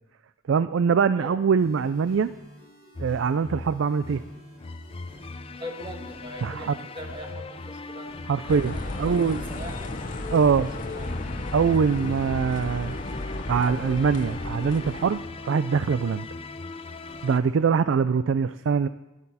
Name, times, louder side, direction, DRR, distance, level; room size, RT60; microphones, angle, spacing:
voice 1, 0.5-2.3 3.0-4.2 6.4-6.7 8.3-8.7 9.0-9.4 10.3-10.7 11.5-13.0 13.5-15.2 15.5-16.3 17.2-18.9, right 6 dB, 85° right, 14 dB, 0.4 m, -23 dB
voice 2, 1.1-1.6 5.5-10.0 10.6-11.3, equal, 25° right, 2 dB, 1.7 m, -42 dB
sound 1, 1.6-17.6, equal, 55° right, 5.3 m, -50 dB
sound 2, 3.0-17.4, left 3 dB, 30° left, 0.5 m, -39 dB
sound 3, 8.5-15.1, left 2 dB, 45° left, 1.0 m, -34 dB
15.0 x 9.9 x 4.2 m, 0.97 s
head